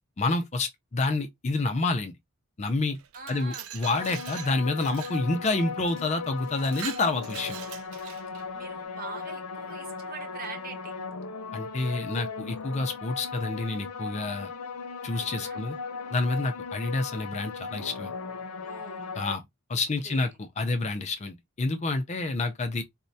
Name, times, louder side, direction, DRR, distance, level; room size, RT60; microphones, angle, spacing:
voice 1, 0.2-2.2 2.6-3.0 3.3-7.6 11.5-14.5 15.0-15.8 16.1-18.1 19.1-19.4 19.7-22.8, left 3 dB, 30° left, 0.4 m, -28 dB
Glass, 2.9-5.2 5.9-6.0 6.4-8.5, right 10 dB, 75° right, 0.4 m, -42 dB
voice 2, 3.1-3.7 8.5-10.9 15.1-15.6 18.6-19.1 19.7-20.3, right 4 dB, 40° right, 0.9 m, -43 dB
sound 1, 3.8-19.3, left 4 dB, 85° left, 0.6 m, -37 dB
4.3 x 2.1 x 2.6 m
head